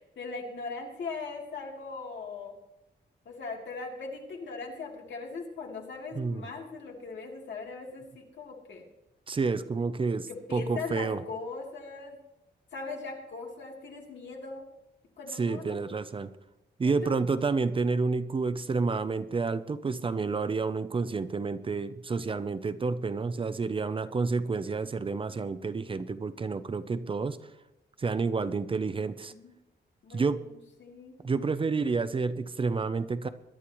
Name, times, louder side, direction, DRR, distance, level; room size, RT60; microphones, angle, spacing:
voice 1, 0.0-2.5 3.2-8.8 10.3-12.2 12.7-14.6 15.2-15.8 16.8-17.2 28.4-28.6 29.3-29.5 30.0-31.2, left 4 dB, 75° left, 0 dB, 3.1 m, -40 dB
voice 2, 6.1-6.5 9.3-11.2 15.3-16.3 16.8-27.4 28.0-29.3 30.1-30.4 31.2-33.3, right 4 dB, 30° right, 12 dB, 0.5 m, -29 dB
22.5 x 11.5 x 3.1 m, 0.91 s
wide cardioid pair, 170°, 19 cm